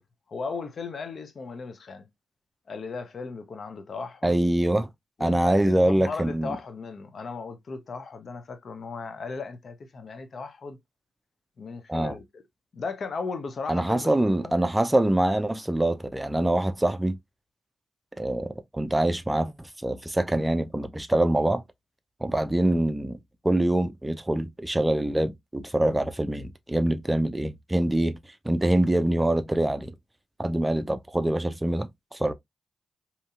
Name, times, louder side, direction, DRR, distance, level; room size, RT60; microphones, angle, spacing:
voice 1, 0.3-2.1 2.7-4.4 5.2-10.8 11.6-12.4 12.7-14.5, left 4 dB, 60° left, 0.6 m, -36 dB
voice 2, 4.2-4.9 5.2-6.6 11.9-12.1 13.7-17.2 18.2-21.6 22.2-23.2 23.4-28.2 28.4-29.9 30.4-32.3, right 1 dB, 15° right, 0.4 m, -24 dB
2.8 x 2.7 x 2.3 m
supercardioid pair, 40°, 0 cm